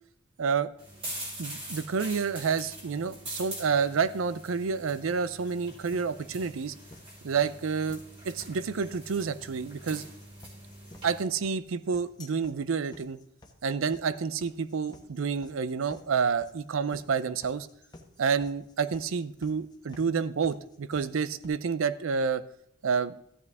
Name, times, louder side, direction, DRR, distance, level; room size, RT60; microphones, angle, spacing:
voice 1, 0.4-0.7 1.4-6.7 7.2-8.0 8.2-10.0 11.0-13.2 13.6-17.7 18.2-22.5 22.8-23.2, right 5 dB, 80° right, 15 dB, 0.5 m, -29 dB
sound 1, 0.8-11.2, right 1 dB, 25° right, 5.1 m, -44 dB
sound 2, 5.5-21.5, left 2 dB, 20° left, 1.1 m, -53 dB
14.0 x 8.3 x 3.5 m, 0.72 s
head